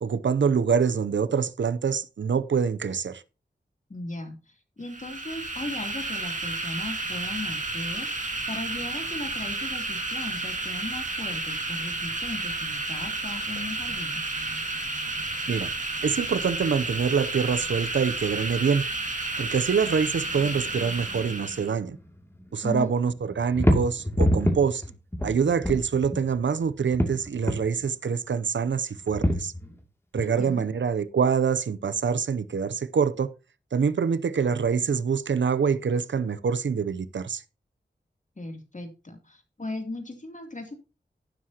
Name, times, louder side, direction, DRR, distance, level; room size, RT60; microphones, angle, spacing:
voice 1, 0.0-3.2 15.5-15.7 16.0-18.8 19.4-22.0 22.5-24.8 25.2-29.5 30.1-33.3 33.7-37.4, right 6 dB, 90° right, 0.7 m, -25 dB
voice 2, 3.9-14.2 22.6-22.9 30.2-30.7 38.4-40.7, left 2 dB, 45° left, 2.9 m, -37 dB
sound 1, 4.8-21.7, right 2 dB, 40° right, 2.4 m, -31 dB
sound 2, 20.3-21.7 22.0-22.8 23.2-26.4 26.7-27.8 28.7-29.8 30.2-30.3, equal, 15° left, 2.5 m, -27 dB
11.5 x 9.8 x 2.9 m
wide cardioid pair, 65°, 18 cm